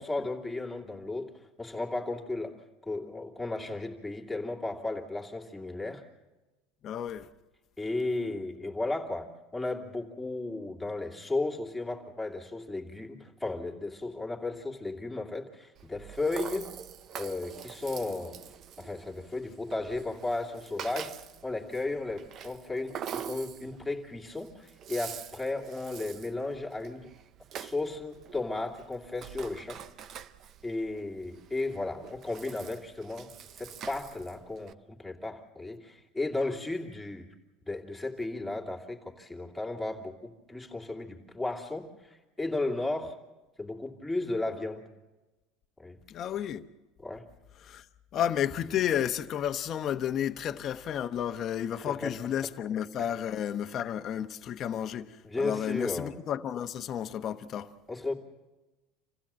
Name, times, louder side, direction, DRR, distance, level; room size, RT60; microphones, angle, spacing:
voice 1, 0.0-2.6 2.9-6.0 7.8-16.7 17.2-18.4 18.8-21.1 21.4-27.1 27.5-29.8 30.6-33.3 33.6-37.3 37.7-43.2 43.6-44.9 45.8-46.0 47.0-47.2 51.9-52.2 53.0-53.1 55.2-56.2 57.9-58.1, left 2 dB, 5° left, 2.6 m, -34 dB
voice 2, 6.8-7.3 46.1-46.6 47.6-47.9 48.1-57.7, left 9 dB, 35° left, 1.0 m, -32 dB
Rattle (instrument), 15.8-34.7, right 8 dB, 40° right, 0.7 m, -45 dB
27.0 x 16.0 x 7.6 m
supercardioid pair, 140°, 0 cm